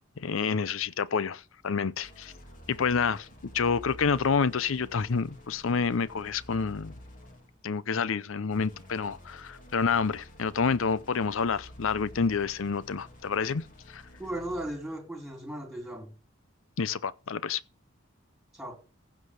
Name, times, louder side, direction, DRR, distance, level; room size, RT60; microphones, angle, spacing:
voice 1, 0.2-2.3 2.7-3.3 3.5-7.0 7.6-14.0 16.8-17.6, left 5 dB, 70° left, 0.6 m, -28 dB
Two Gongs, 2.0-7.6 8.5-14.9, equal, 40° left, 2.7 m, -50 dB
voice 2, 14.2-16.1 18.5-18.8, right 1 dB, ahead, 3.3 m, -36 dB
15.5 x 6.2 x 4.8 m
head